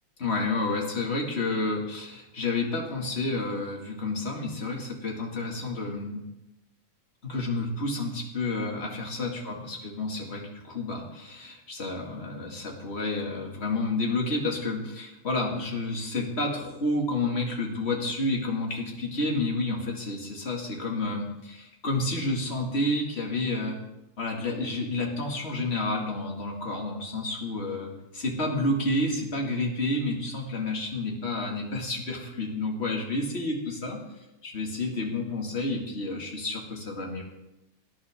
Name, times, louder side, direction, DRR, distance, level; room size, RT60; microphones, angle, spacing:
voice 1, 0.2-6.2 7.2-10.4 10.7-23.8 24.2-34.0 34.4-37.2, left 2 dB, 25° left, 0 dB, 1.8 m, -30 dB
19.0 x 10.5 x 3.6 m, 0.95 s
omnidirectional pair, 3.4 m